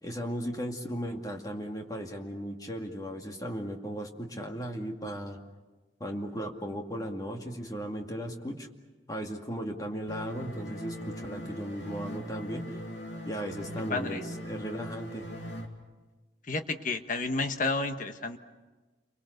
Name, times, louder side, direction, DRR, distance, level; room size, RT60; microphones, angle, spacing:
voice 1, 0.0-5.4 6.0-8.7 9.1-12.8 13.2-15.3, equal, 20° left, 2 dB, 2.2 m, -36 dB
sound 1, 10.1-15.7, equal, 70° left, 2.9 m, -40 dB
voice 2, 13.9-14.2 16.5-18.4, left 3 dB, 45° left, 7 dB, 1.4 m, -31 dB
29.5 x 24.0 x 6.7 m, 1.2 s
head